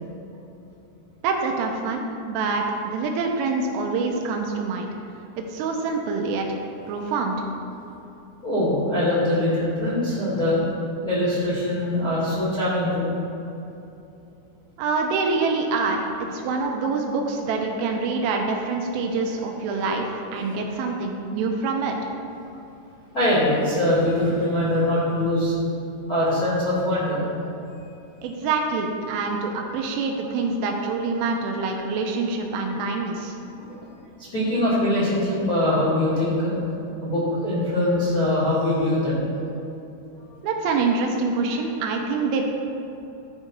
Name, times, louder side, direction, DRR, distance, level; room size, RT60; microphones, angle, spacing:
voice 1, 1.2-4.9 5.4-6.5 6.9-7.4 14.8-16.0 16.3-22.0 28.2-33.4 40.4-42.4, right 4 dB, 80° right, 2 dB, 3.2 m, -25 dB
voice 2, 8.4-10.6 11.0-13.0 16.6-16.7 20.2-20.6 23.1-25.5 26.1-27.2 33.6-33.9 34.3-36.5 37.0-39.2 40.3-40.5, left 1 dB, 45° left, -10 dB, 1.2 m, -23 dB
13.5 x 5.2 x 4.5 m, 2.9 s
omnidirectional pair, 6.0 m